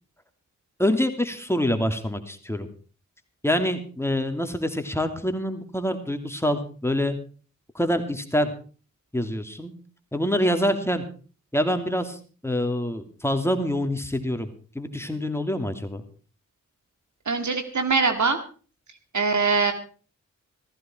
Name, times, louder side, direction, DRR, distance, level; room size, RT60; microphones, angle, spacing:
voice 1, 0.8-2.7 3.4-7.2 7.7-8.5 9.1-9.7 10.1-11.0 11.5-14.5 14.7-16.0, equal, 10° left, 7 dB, 2.8 m, -26 dB
voice 2, 17.3-18.4 19.1-19.7, right 4 dB, 65° right, 8 dB, 2.2 m, -22 dB
15.0 x 14.5 x 4.5 m, 0.39 s
cardioid pair, 40°, 31 cm